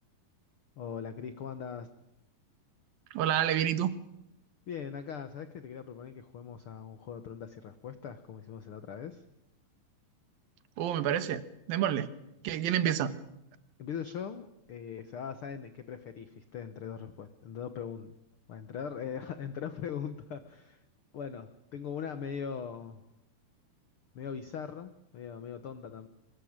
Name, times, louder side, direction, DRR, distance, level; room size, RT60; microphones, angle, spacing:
voice 1, 0.8-1.9 4.7-9.2 12.8-12.9 13.8-18.1 18.5-20.8 21.1-23.1 24.1-26.1, left 7 dB, 75° left, 11 dB, 1.2 m, -40 dB
voice 2, 3.1-4.0 10.8-11.4 11.7-12.1 12.4-13.1, right 10 dB, 85° right, 13 dB, 3.0 m, -28 dB
24.0 x 20.0 x 8.9 m, 0.84 s
omnidirectional pair, 4.1 m